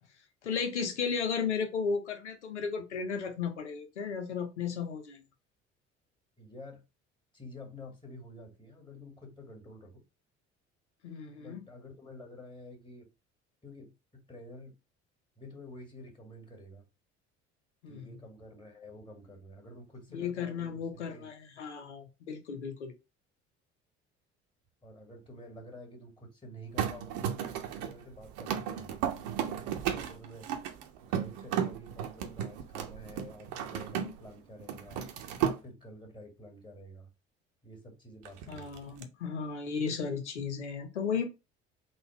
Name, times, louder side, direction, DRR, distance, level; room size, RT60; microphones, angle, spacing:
voice 1, 0.4-5.2 11.0-11.6 17.8-18.1 20.1-22.9 38.5-41.2, left 6 dB, 85° left, 0.8 m, -34 dB
voice 2, 6.4-6.8 7.3-10.0 11.4-13.1 13.6-14.8 15.4-16.8 17.9-21.3 24.8-29.0 29.8-30.5 31.0-35.1 35.6-37.1 37.6-38.8, left 1 dB, 15° left, 1.9 m, -49 dB
sound 1, 26.8-34.3 34.6-35.6 38.3-39.0, right 9 dB, 60° right, 0.8 m, -34 dB
3.9 x 2.4 x 4.4 m
figure-of-eight pair, 55°, 34 cm